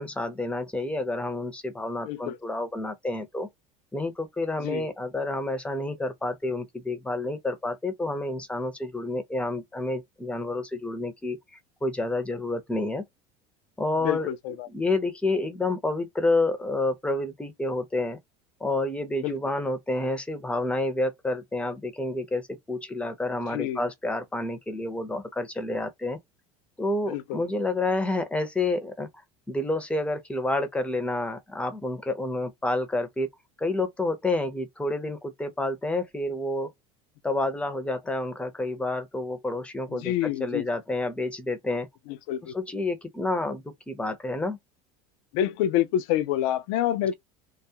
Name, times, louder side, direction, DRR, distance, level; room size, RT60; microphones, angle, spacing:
voice 1, 0.0-3.5 3.9-11.4 11.8-13.0 13.8-14.3 14.7-18.2 18.6-26.2 26.8-29.1 29.5-33.3 33.6-36.7 37.2-40.1 40.4-41.9 42.5-44.6, left 2 dB, 5° left, 0.6 m, -29 dB
voice 2, 2.0-2.4 4.6-4.9 14.0-14.7 19.2-19.4 23.5-23.9 27.1-27.4 39.9-40.6 42.1-42.6 45.3-47.1, left 11 dB, 65° left, 0.4 m, -27 dB
2.3 x 2.0 x 2.7 m
supercardioid pair, 100°, 17 cm